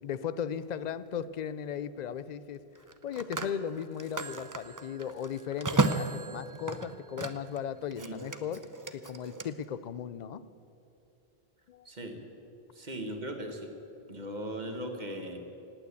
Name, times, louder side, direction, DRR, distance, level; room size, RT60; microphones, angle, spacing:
voice 1, 0.0-2.6 3.0-8.6 8.9-10.4 11.7-11.9, left 8 dB, 50° left, 15 dB, 0.6 m, -37 dB
Telephone, 0.6-0.8 2.7-7.6 7.9-9.5, right 3 dB, 25° right, 0.5 m, -34 dB
voice 2, 11.8-12.2 12.7-13.7 14.1-15.4, right 1 dB, 45° right, 4 dB, 1.7 m, -38 dB
17.5 x 9.1 x 8.3 m, 2.8 s
omnidirectional pair, 1.0 m